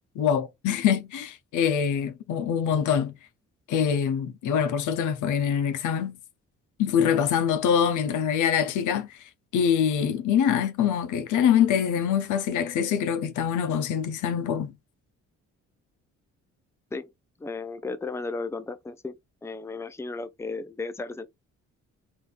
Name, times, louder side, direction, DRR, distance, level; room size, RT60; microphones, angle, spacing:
voice 1, 0.1-3.1 3.7-6.2 6.8-9.2 9.5-14.7, left 8 dB, 85° left, 0.9 m, -24 dB
voice 2, 17.4-19.2 19.4-21.3, left 3 dB, 10° left, 0.6 m, -34 dB
4.1 x 2.9 x 3.4 m
cardioid pair, 90°, 30 cm